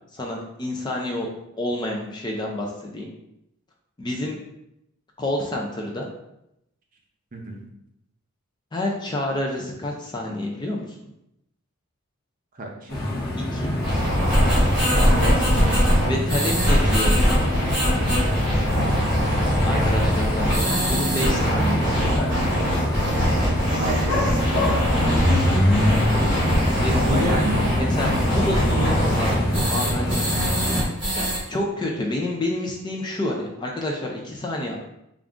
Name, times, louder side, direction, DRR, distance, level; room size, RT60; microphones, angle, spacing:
voice 1, 0.1-1.3 1.6-3.1 4.0-4.4 5.2-6.1 8.7-10.8 13.5-13.7 16.1-17.4 19.6-22.7 26.8-27.4 27.8-30.2 31.2-34.8, left 1 dB, 20° left, 0 dB, 0.4 m, -28 dB
voice 2, 12.5-12.9 15.1-15.4 19.6-19.9 23.7-24.7 26.9-27.7, right 2 dB, 40° right, 0 dB, 0.6 m, -30 dB
sound 1, 12.9-30.8, left 1 dB, 45° left, 0.9 m, -25 dB
sound 2, 13.8-31.4, equal, 5° right, 1.4 m, -22 dB
3.6 x 2.4 x 3.5 m, 0.82 s
head